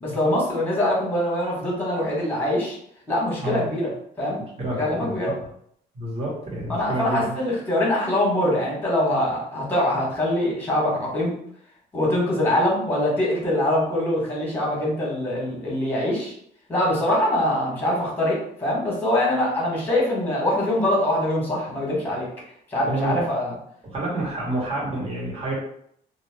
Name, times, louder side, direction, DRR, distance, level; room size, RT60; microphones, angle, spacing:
voice 1, 0.0-2.8 3.1-3.9 4.2-4.4 4.7-5.3 6.7-11.3 11.9-16.3 16.7-22.3 22.7-23.5, left 1 dB, 10° left, -3 dB, 1.1 m, -23 dB
voice 2, 4.6-5.3 5.9-7.3 22.9-23.2 23.9-25.5, right 1 dB, 35° right, -5 dB, 1.1 m, -28 dB
2.3 x 2.1 x 3.3 m, 0.69 s
cardioid pair, 110°, 17 cm